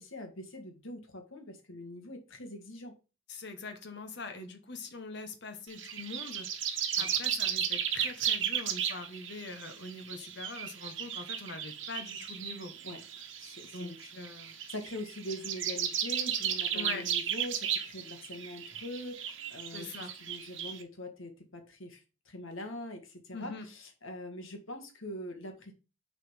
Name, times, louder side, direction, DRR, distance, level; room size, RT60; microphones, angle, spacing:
voice 1, 0.0-2.9 7.0-7.2 12.8-13.0 13.4-14.0 14.4-19.9 20.2-25.7, left 1 dB, 80° left, 1.8 m, -43 dB
voice 2, 3.3-6.5 7.0-12.7 13.7-14.6 16.7-17.1 19.7-20.1 23.3-23.7, left 3 dB, 55° left, 1.4 m, -43 dB
sound 1, 5.7-20.8, right 9 dB, 65° right, 1.1 m, -35 dB
6.5 x 4.2 x 5.7 m
head